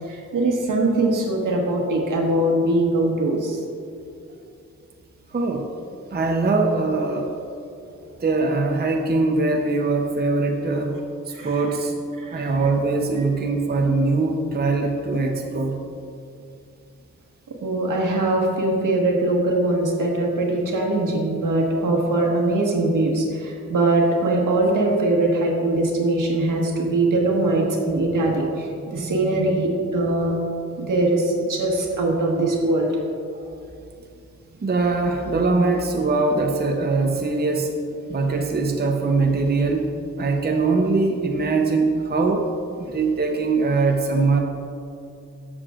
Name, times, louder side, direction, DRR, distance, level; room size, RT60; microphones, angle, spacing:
voice 1, 0.0-3.6 11.3-11.5 12.2-12.5 17.6-30.3 30.8-33.0, right 2 dB, 75° right, -1 dB, 1.5 m, -22 dB
voice 2, 5.3-5.7 6.1-7.3 8.2-10.9 11.3-11.9 12.3-15.8 33.3-33.5 34.6-37.7 38.1-39.9 40.2-42.5 42.9-44.4, right 3 dB, 30° right, 2 dB, 0.7 m, -22 dB
13.0 x 6.8 x 2.5 m, 2.6 s
cardioid pair, 75°, 31 cm